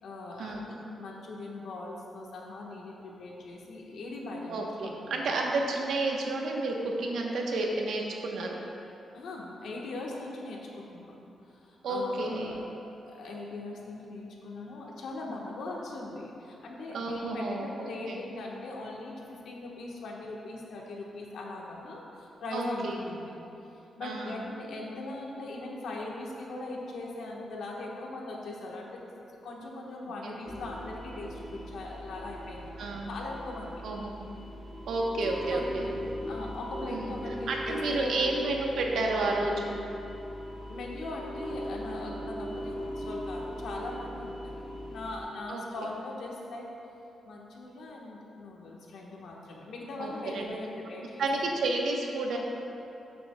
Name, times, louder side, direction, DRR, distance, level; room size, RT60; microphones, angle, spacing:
voice 1, 0.0-5.3 9.1-11.2 11.5-12.6 13.1-23.4 24.0-29.0 29.4-33.7 35.5-36.0 36.3-38.1 38.9-39.1 40.7-46.6 47.2-51.2, left 2 dB, 75° left, -2 dB, 1.2 m, -40 dB
voice 2, 4.5-8.6 11.8-12.6 16.9-18.2 22.5-22.9 24.0-24.4 30.2-30.3 32.8-33.1 33.8-34.3 34.9-35.8 36.9-37.1 37.5-39.8 45.5-45.9 50.0-50.6 51.2-52.4, right 2 dB, 75° right, 0 dB, 1.0 m, -31 dB
sound 1, 30.5-45.2, equal, 10° left, 1.1 m, -39 dB
12.0 x 7.6 x 2.3 m, 2.9 s
wide cardioid pair, 160°, 0 cm